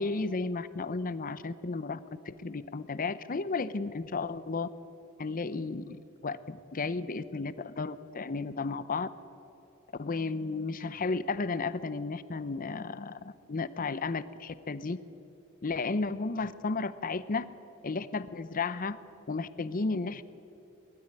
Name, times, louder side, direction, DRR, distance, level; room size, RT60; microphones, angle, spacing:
voice 1, 0.0-2.0 2.3-4.7 5.2-9.1 10.0-15.0 15.6-17.5 17.8-19.0 19.3-20.2, left 3 dB, 40° left, 15 dB, 0.7 m, -33 dB
20.0 x 13.0 x 9.7 m, 2.8 s
head